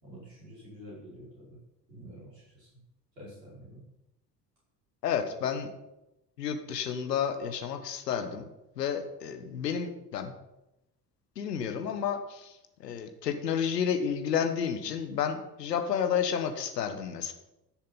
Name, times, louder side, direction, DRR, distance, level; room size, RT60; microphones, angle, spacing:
voice 1, 0.0-1.6 1.9-2.7 3.2-3.8, equal, 85° right, -7 dB, 5.3 m, -48 dB
voice 2, 5.0-5.7 6.4-8.4 8.8-10.3 11.4-12.5 12.8-17.3, left 7 dB, 80° left, 7 dB, 1.3 m, -31 dB
14.5 x 6.8 x 5.6 m, 0.93 s
figure-of-eight pair, 55°, 48 cm